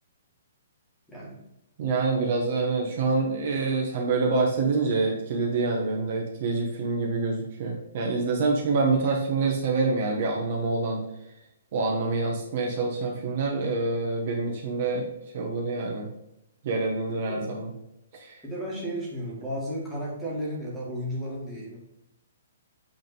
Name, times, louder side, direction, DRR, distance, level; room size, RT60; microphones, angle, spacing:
voice 1, 1.8-11.1 11.7-15.1 15.3-16.1 16.6-17.7 18.1-18.4, right 3 dB, 35° right, 0 dB, 1.1 m, -26 dB
voice 2, 18.4-21.8, equal, 5° left, -6 dB, 1.7 m, -33 dB
8.4 x 3.6 x 3.9 m, 0.83 s
hypercardioid pair, 175°, 0 cm